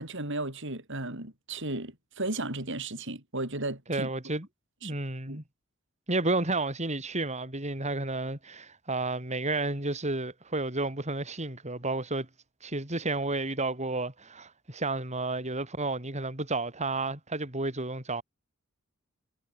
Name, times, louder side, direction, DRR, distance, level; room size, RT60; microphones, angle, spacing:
voice 1, 0.0-4.1 4.8-4.9 5.3-5.4, right 2 dB, 60° right, 8.0 m, -35 dB
voice 2, 3.9-4.5 4.8-5.4 6.1-12.3 12.6-18.2, right 2 dB, 35° right, 5.0 m, -31 dB
head